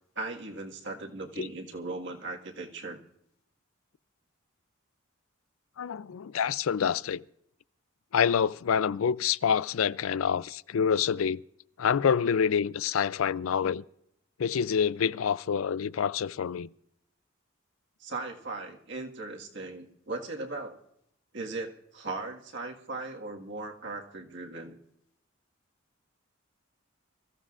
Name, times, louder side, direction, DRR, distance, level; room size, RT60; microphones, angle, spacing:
voice 1, 0.2-3.0 18.0-20.8 21.3-24.8, right 3 dB, 60° right, 1.7 m, -38 dB
voice 2, 5.8-7.2 8.1-11.4 11.8-13.8 14.4-16.7, left 7 dB, 85° left, 0.4 m, -27 dB
25.0 x 14.5 x 2.5 m
head